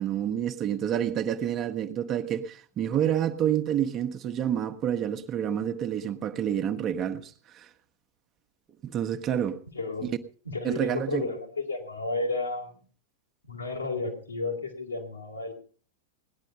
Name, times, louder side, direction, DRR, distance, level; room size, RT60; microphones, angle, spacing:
voice 1, 0.0-7.7 8.8-9.6 10.0-10.1 10.6-11.3, right 9 dB, 30° right, 1.1 m, -28 dB
voice 2, 9.7-10.1 10.5-12.8 13.5-15.5, left 3 dB, 80° left, 3.5 m, -32 dB
18.0 x 10.5 x 5.5 m
figure-of-eight pair, 95°, 0 cm